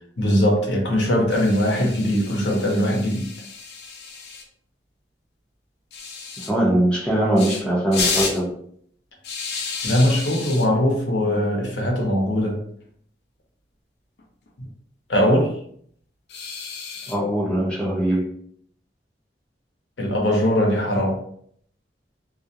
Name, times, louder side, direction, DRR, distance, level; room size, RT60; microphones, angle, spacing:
voice 1, 0.2-3.3 9.8-12.6 15.1-15.5 20.0-21.2, equal, 85° left, 0 dB, 0.7 m, -20 dB
sound 1, 1.3-4.4 5.9-6.5 7.4-7.6 7.9-8.4 9.2-10.7 11.9-12.1 12.4-12.5 12.8-12.9 14.2-14.7 16.3-17.1, left 5 dB, 65° left, 0.4 m, -31 dB
voice 2, 6.5-8.5 17.1-18.3, right 1 dB, 5° left, -5 dB, 0.7 m, -21 dB
2.4 x 2.0 x 2.7 m, 0.64 s
head